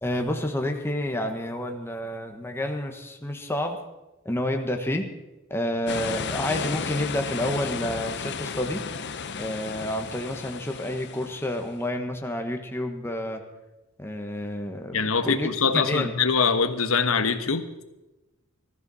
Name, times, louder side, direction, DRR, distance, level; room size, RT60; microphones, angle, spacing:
voice 1, 0.0-3.8 4.2-5.1 5.5-8.8 9.4-13.4 14.0-16.1, left 1 dB, 10° left, 4 dB, 1.3 m, -29 dB
sound 1, 5.9-11.8, left 5 dB, 55° left, 0.8 m, -34 dB
voice 2, 14.9-17.8, left 5 dB, 85° left, 9 dB, 1.2 m, -23 dB
19.5 x 14.0 x 4.2 m, 1.0 s
head